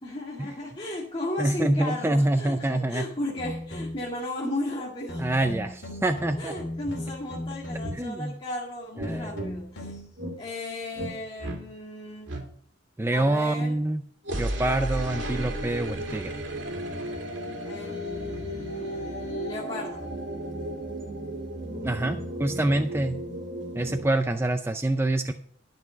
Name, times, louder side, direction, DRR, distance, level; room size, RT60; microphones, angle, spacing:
voice 1, 0.0-5.3 6.4-10.0 10.4-12.3 13.1-13.8 17.6-20.0, left 2 dB, 30° left, -5 dB, 2.0 m, -35 dB
voice 2, 1.4-3.1 5.2-6.5 7.9-8.3 9.0-9.3 13.0-14.0 14.4-16.4 21.8-23.2 23.7-25.3, right 1 dB, 15° right, 7 dB, 0.4 m, -26 dB
sound 1, 3.4-4.2 5.1-8.1 9.0-10.1, left 1 dB, 70° left, 3.0 m, -37 dB
sound 2, 6.8-7.0 7.8-8.0 9.0-9.5 10.2-10.4 10.9-11.1 11.4-11.6 12.3-12.4 14.2-24.1, right 1 dB, 85° right, 2.3 m, -34 dB
12.0 x 6.1 x 5.1 m, 0.63 s
head